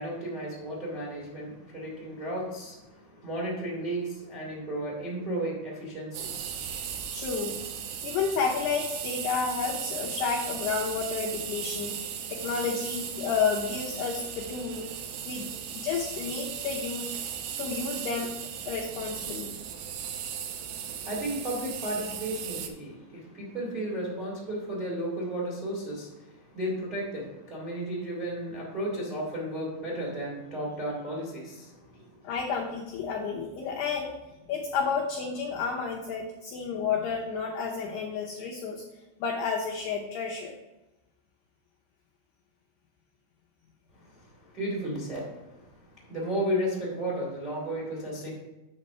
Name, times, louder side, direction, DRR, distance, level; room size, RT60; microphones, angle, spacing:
voice 1, 0.0-6.7 20.6-32.0 44.2-45.3 45.9-48.3, right 1 dB, 20° right, -5 dB, 1.5 m, -34 dB
sound 1, 6.1-22.7, right 8 dB, 85° right, 3.3 m, -37 dB
voice 2, 6.7-7.6 8.0-14.9 15.3-17.1 17.6-19.5 32.2-34.2 34.5-38.8 39.2-40.6, left 5 dB, 80° left, -2 dB, 2.4 m, -31 dB
8.6 x 4.2 x 6.5 m, 1.0 s
omnidirectional pair, 5.8 m